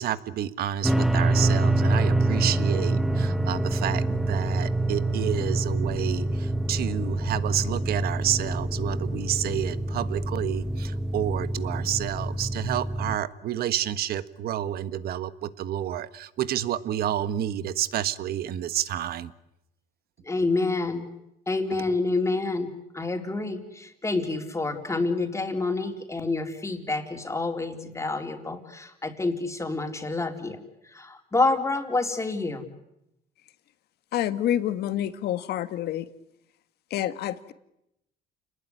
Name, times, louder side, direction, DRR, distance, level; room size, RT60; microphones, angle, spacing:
voice 1, 0.0-19.3, right 11 dB, 65° right, 14 dB, 1.4 m, -29 dB
sound 1, 0.8-13.2, right 1 dB, ahead, 1.1 m, -26 dB
voice 2, 20.2-21.1 21.5-32.7, left 3 dB, 15° left, 4 dB, 4.0 m, -28 dB
voice 3, 34.1-36.1 36.9-37.5, left 11 dB, 70° left, 12 dB, 1.7 m, -28 dB
29.0 x 20.0 x 9.9 m, 0.84 s
cardioid pair, 110°, 17 cm